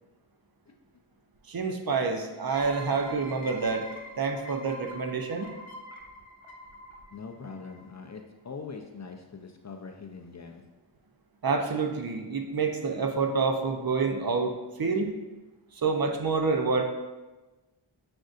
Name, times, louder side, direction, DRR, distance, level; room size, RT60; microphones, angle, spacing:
voice 1, 1.5-3.9 4.2-5.5 11.4-15.1 15.7-16.8, right 4 dB, 45° right, 4 dB, 0.6 m, -28 dB
sound 1, 2.5-8.0, left 1 dB, 70° left, 0.8 m, -45 dB
voice 2, 7.1-10.6, left 5 dB, 35° left, 3 dB, 0.4 m, -42 dB
7.4 x 2.6 x 2.4 m, 1.1 s
cardioid pair, 45°, 50 cm